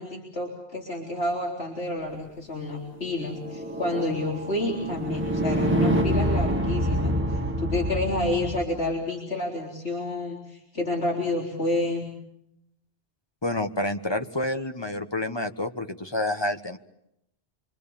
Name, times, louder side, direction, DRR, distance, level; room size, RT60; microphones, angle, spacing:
voice 1, 0.0-12.1, left 2 dB, 85° left, -2 dB, 4.2 m, -29 dB
sound 1, 3.1-8.6, equal, 10° right, 1.9 m, -26 dB
voice 2, 13.4-16.8, left 1 dB, 25° left, 6 dB, 1.3 m, -28 dB
26.5 x 24.0 x 7.1 m, 0.80 s
omnidirectional pair, 1.1 m